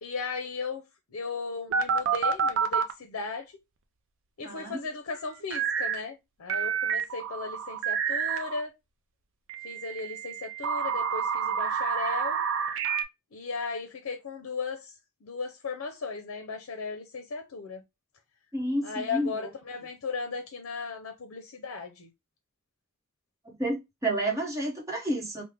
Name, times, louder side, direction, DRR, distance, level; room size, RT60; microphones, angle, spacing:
voice 1, 0.0-0.8 1.1-3.5 4.4-8.7 9.6-12.4 13.3-14.9 15.2-17.8 18.8-22.1, left 4 dB, 80° left, 0.5 m, -36 dB
sound 1, 1.7-2.9 5.5-6.0 6.5-8.6 9.5-13.0, right 7 dB, 65° right, 0.4 m, -28 dB
voice 2, 4.4-4.8 18.5-19.5 23.4-25.4, right 1 dB, 15° right, 1.0 m, -30 dB
3.1 x 2.1 x 3.4 m
head